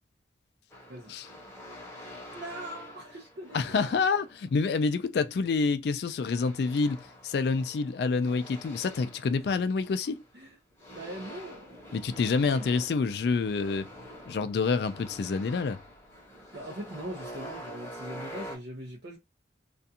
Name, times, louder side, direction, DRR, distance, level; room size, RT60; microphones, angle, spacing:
sound 1, 0.7-4.9 6.2-10.4 10.8-18.6, equal, 15° left, 0.8 m, -46 dB
voice 1, 2.3-4.0 10.3-10.6 10.9-11.9 12.4-12.7 16.5-19.2, right 1 dB, 60° right, 0.7 m, -41 dB
voice 2, 3.5-10.2 11.9-13.9 14.3-15.8, left 4 dB, 60° left, 0.3 m, -27 dB
2.4 x 2.3 x 2.7 m
head